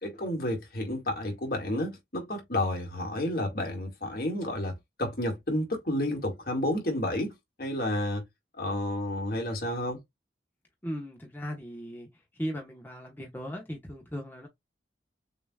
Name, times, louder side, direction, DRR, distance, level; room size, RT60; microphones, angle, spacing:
voice 1, 0.0-7.3 7.6-8.2 8.6-10.0, left 1 dB, 55° left, 2.0 m, -31 dB
voice 2, 10.8-12.1 12.4-14.5, equal, 10° left, 1.1 m, -37 dB
6.8 x 2.9 x 2.3 m
head